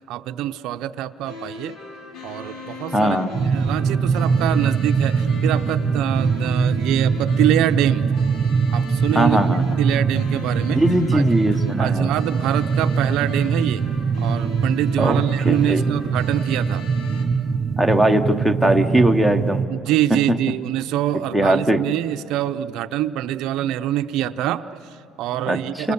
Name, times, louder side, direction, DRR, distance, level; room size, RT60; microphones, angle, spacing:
voice 1, 0.0-1.8 2.2-3.2 3.5-8.1 8.7-10.8 11.1-11.2 11.8-13.8 14.2-16.9 19.7-25.9, right 12 dB, 65° right, 9 dB, 0.7 m, -25 dB
sound 1, 1.2-17.2, left 4 dB, 85° left, 5.1 m, -39 dB
voice 2, 2.9-3.3 9.1-9.8 10.7-12.1 15.0-15.8 17.8-19.6 20.1-20.2 21.3-21.8 25.5-25.9, right 1 dB, ahead, 9 dB, 0.9 m, -20 dB
sound 2, 3.3-19.7, right 5 dB, 30° right, 0.7 m, -22 dB
30.0 x 26.5 x 7.1 m, 2.8 s
cardioid pair, 165°, 0 cm